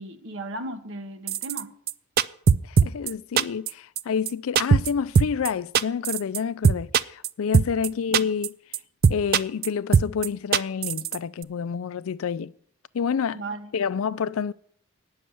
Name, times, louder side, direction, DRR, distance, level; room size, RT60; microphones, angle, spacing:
voice 1, 0.0-1.7 13.3-13.7, right 2 dB, 60° right, 1.2 m, -35 dB
sound 1, 1.3-1.6 1.9-2.0 2.2-3.1 3.4-3.7 4.0-4.1 4.3-4.4 4.5-4.9 5.1-5.5 5.7-6.4 6.6-7.3 7.5-7.9 8.1-8.5 8.7-8.8 9.0-9.7 9.9-10.3 10.5-11.2 11.4-11.5, right 6 dB, 45° right, 0.4 m, -19 dB
voice 2, 2.6-8.6 9.1-12.5 12.9-13.4 13.7-14.5, left 6 dB, 70° left, 0.4 m, -28 dB
9.4 x 6.4 x 7.7 m
head